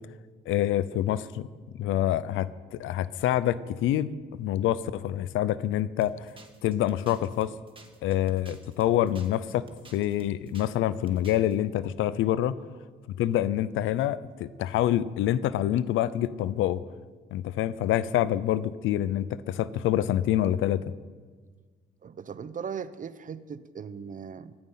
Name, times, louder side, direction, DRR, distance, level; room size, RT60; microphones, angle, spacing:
voice 1, 0.5-1.5 1.8-6.3 6.6-7.5 8.0-9.6 9.9-12.5 13.1-16.8 17.3-20.9, left 12 dB, 90° left, 17 dB, 0.7 m, -26 dB
sound 1, 6.0-10.8 11.1-11.6, right 3 dB, 25° right, 2.0 m, -52 dB
voice 2, 22.0-24.6, right 7 dB, 40° right, 15 dB, 0.8 m, -38 dB
16.0 x 13.5 x 5.7 m, 1.5 s
cardioid pair, 90°, 20 cm